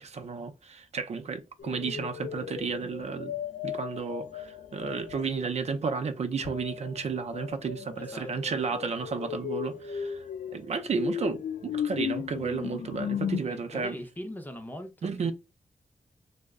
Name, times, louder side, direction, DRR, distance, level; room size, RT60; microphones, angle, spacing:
voice 1, 0.0-3.3 3.6-10.2 10.5-13.9 15.0-15.3, right 5 dB, 55° right, 0.5 m, -32 dB
sound 1, 1.6-5.3 6.4-13.4, left 8 dB, 75° left, 0.4 m, -36 dB
voice 2, 8.0-8.6 13.4-15.3, equal, 15° left, 0.5 m, -41 dB
3.1 x 2.0 x 3.5 m
wide cardioid pair, 145°, 13 cm